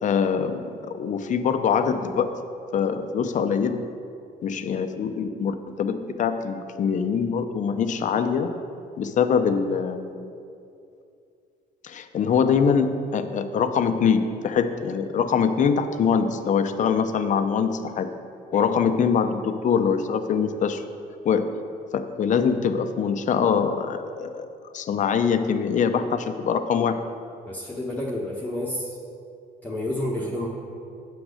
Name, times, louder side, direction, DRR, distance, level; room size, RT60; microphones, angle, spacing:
voice 1, 0.0-2.3 2.7-3.8 4.4-8.5 9.0-10.3 11.8-18.1 18.5-20.8 21.2-21.5 21.9-24.5 24.7-27.0, left 6 dB, 45° left, 8 dB, 0.7 m, -23 dB
voice 2, 27.5-29.0 29.6-30.5, left 1 dB, 10° left, -5 dB, 1.1 m, -30 dB
8.7 x 6.2 x 6.4 m, 2.5 s
cardioid pair, 110°, 17 cm